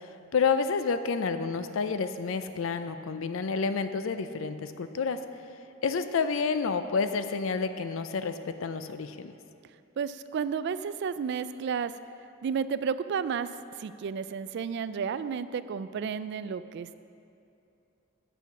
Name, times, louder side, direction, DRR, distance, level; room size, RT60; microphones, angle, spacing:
voice 1, 0.3-5.2 5.8-9.3, left 5 dB, 75° left, 10 dB, 0.5 m, -29 dB
voice 2, 10.0-11.9 12.4-13.5 13.8-17.0, right 6 dB, 60° right, 14 dB, 0.3 m, -32 dB
8.2 x 7.0 x 5.9 m, 2.7 s
head